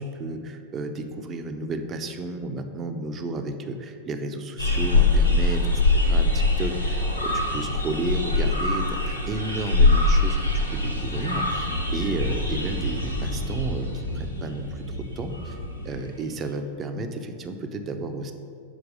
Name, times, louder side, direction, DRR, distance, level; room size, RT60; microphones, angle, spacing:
voice 1, 0.0-5.6 6.0-15.6 15.8-18.3, right 2 dB, 25° right, 6 dB, 0.5 m, -32 dB
sound 1, 4.6-13.9 15.3-15.5, left 2 dB, 90° left, 1.0 m, -23 dB
sound 2, 10.3-16.0, equal, 70° left, 1.3 m, -35 dB
6.2 x 4.6 x 5.1 m, 2.7 s
figure-of-eight pair, 90°, 0 cm